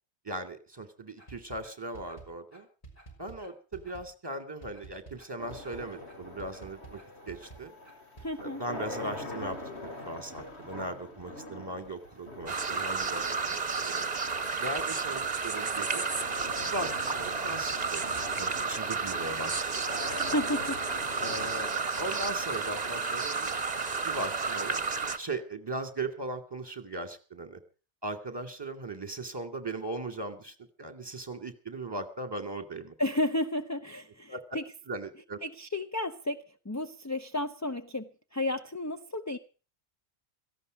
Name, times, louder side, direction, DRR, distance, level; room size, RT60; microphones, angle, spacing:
voice 1, 0.2-2.7 3.2-7.0 7.3-7.7 8.4-14.1 14.6-16.0 16.6-18.0 18.3-20.1 21.2-23.5 24.0-24.8 25.2-27.6 28.0-32.9 34.3-34.4 34.9-35.4, right 2 dB, 20° right, 8 dB, 2.2 m, -38 dB
sound 1, 1.2-8.3, right 3 dB, 35° left, 4.8 m, -50 dB
sound 2, 5.4-24.4, left 2 dB, 70° left, 3.7 m, -44 dB
voice 2, 8.2-8.6 20.2-20.8 33.0-34.6 35.4-39.4, left 1 dB, 20° left, 8 dB, 0.7 m, -32 dB
sound 3, 12.5-25.2, right 4 dB, 40° right, 1.3 m, -32 dB
17.5 x 15.0 x 5.0 m, 0.37 s
omnidirectional pair, 1.1 m